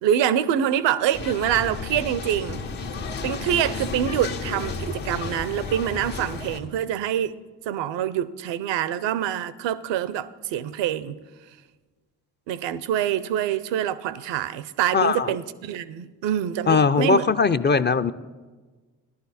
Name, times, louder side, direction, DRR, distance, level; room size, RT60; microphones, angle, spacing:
voice 1, 0.0-2.6 3.2-7.4 7.7-11.2 12.5-17.3, right 10 dB, 70° right, 0.7 m, -25 dB
sound 1, 1.1-6.6, left 4 dB, 75° left, 1.5 m, -32 dB
voice 2, 14.9-15.3 16.7-18.1, left 5 dB, 25° left, 0.5 m, -20 dB
15.5 x 11.5 x 4.2 m
hypercardioid pair, 45°, 44 cm